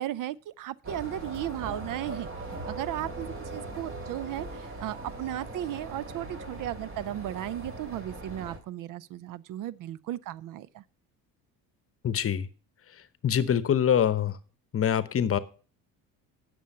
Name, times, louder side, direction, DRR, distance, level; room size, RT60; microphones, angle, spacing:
voice 1, 0.0-2.3 2.7-10.8, right 13 dB, 55° right, 0.6 m, -35 dB
sound 1, 0.8-8.6, right 2 dB, 35° right, 3.2 m, -40 dB
voice 2, 12.0-12.5 12.9-14.4 14.7-15.4, left 9 dB, 35° left, 1.0 m, -25 dB
11.5 x 7.0 x 5.5 m
supercardioid pair, 95°, 38 cm